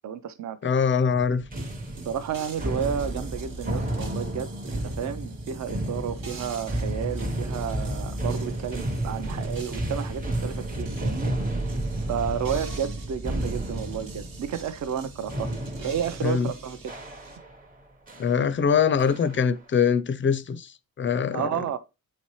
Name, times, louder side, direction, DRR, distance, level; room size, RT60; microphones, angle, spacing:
voice 1, 0.0-0.6 2.1-4.5 4.8-11.3 12.1-15.5 15.8-16.8 21.3-21.8, right 8 dB, 50° right, 0.5 m, -31 dB
voice 2, 0.6-1.4 16.2-16.5 18.2-21.6, left 6 dB, 35° left, 0.4 m, -23 dB
sound 1, 1.1-17.7 18.1-18.4 19.0-19.5, right 1 dB, 25° right, 0.8 m, -32 dB
sound 2, 1.6-17.4, right 3 dB, 70° right, 1.1 m, -45 dB
8.0 x 4.2 x 3.0 m
wide cardioid pair, 175°, 36 cm